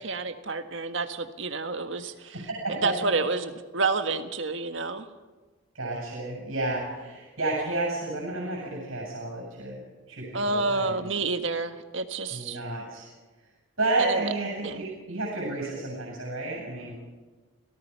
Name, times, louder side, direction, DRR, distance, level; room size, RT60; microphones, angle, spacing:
voice 1, 0.0-2.4 2.7-5.1 10.3-12.6 14.0-14.3 14.6-14.8, right 3 dB, 70° right, 8 dB, 1.6 m, -29 dB
voice 2, 2.3-2.8 5.7-9.8 10.1-11.1 12.3-13.1 13.8-17.0, right 2 dB, 90° right, -3 dB, 7.9 m, -31 dB
29.5 x 18.0 x 5.7 m, 1.3 s
head